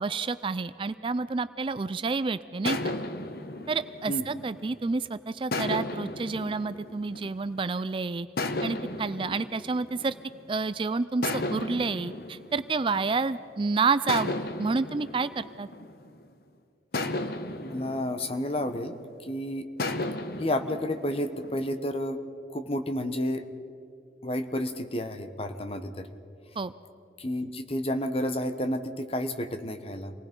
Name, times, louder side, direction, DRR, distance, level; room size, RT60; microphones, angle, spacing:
voice 1, 0.0-2.9 3.7-8.3 8.6-10.1 10.5-15.7 26.6-26.7, right 4 dB, 30° right, 14 dB, 0.4 m, -29 dB
sound 1, 2.6-4.9 5.5-7.8 8.4-10.6 11.2-13.5 14.1-16.3 16.9-19.2 19.8-21.6, left 2 dB, 60° left, 1.0 m, -35 dB
voice 2, 17.6-19.0 19.2-19.7 20.4-22.2 22.5-23.4 24.2-26.1 27.2-30.1, left 1 dB, 35° left, 8 dB, 1.1 m, -31 dB
27.5 x 19.5 x 5.4 m, 2.5 s
head